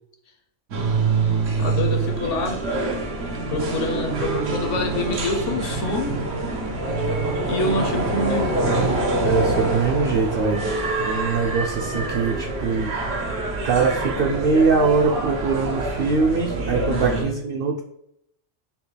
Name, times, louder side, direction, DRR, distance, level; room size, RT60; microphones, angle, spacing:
sound 1, 0.7-17.2, right 3 dB, 85° right, 1.2 m, -25 dB
voice 1, 1.6-2.6 3.5-6.2 7.5-8.6 16.8-17.3, left 2 dB, 75° left, 4 dB, 1.1 m, -26 dB
voice 2, 9.2-10.6 11.0-12.9 13.6-17.8, right 4 dB, 60° right, 1 dB, 0.6 m, -22 dB
5.7 x 2.2 x 3.3 m, 0.74 s
omnidirectional pair, 1.3 m